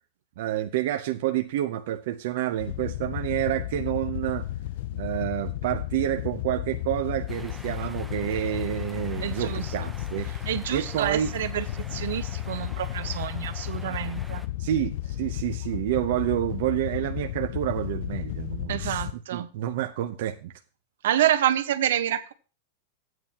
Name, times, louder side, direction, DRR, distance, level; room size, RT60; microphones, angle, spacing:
voice 1, 0.4-4.5 4.9-11.3 14.6-19.0 19.3-20.5, right 13 dB, 55° right, 0.7 m, -29 dB
Wind / Boat Water vehicle, 2.6-19.1, left 14 dB, 50° left, 0.4 m, -33 dB
sound 1, 7.3-14.5, right 1 dB, ahead, 0.6 m, -47 dB
voice 2, 9.2-9.6 10.5-14.4 18.7-19.5 21.0-22.3, right 11 dB, 75° right, 1.1 m, -28 dB
15.5 x 9.2 x 2.9 m
supercardioid pair, 175°, 0 cm